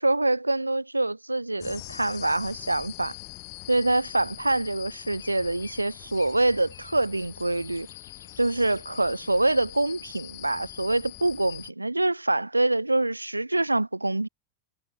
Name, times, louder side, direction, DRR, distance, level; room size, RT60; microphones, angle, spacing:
voice 1, 0.0-3.1 3.7-7.9 8.4-14.3, right 2 dB, 85° right, 0.7 m, -25 dB
sound 1, 1.6-11.7, left 30 dB, 45° left, 0.8 m, -43 dB
sound 2, 3.1-9.8, left 5 dB, 75° left, 6.7 m, -55 dB
figure-of-eight pair, 90°, 0 cm